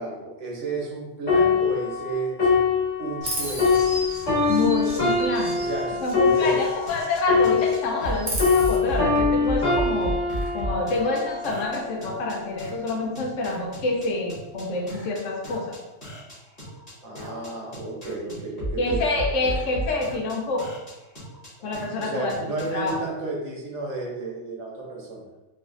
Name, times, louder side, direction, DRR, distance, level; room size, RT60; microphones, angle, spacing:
voice 1, 0.0-2.5 3.0-3.8 5.6-6.6 17.0-19.0 22.0-25.3, right 3 dB, 75° right, -3 dB, 1.2 m, -32 dB
sound 1, 1.3-8.1 8.4-12.0 12.6-12.8, left 4 dB, 60° left, 2.0 m, -23 dB
Chirp tweet, 3.2-7.2 7.5-8.8, right 1 dB, 45° right, 0.9 m, -35 dB
voice 2, 4.5-5.5 6.0-10.1 10.5-15.8 18.8-20.7 21.6-22.4 22.7-23.0, left 2 dB, 85° left, 1 dB, 1.0 m, -27 dB
sound 2, 6.9-22.9, right 1 dB, 30° left, 1.5 m, -33 dB
3.9 x 2.4 x 2.5 m, 1.0 s
omnidirectional pair, 1.3 m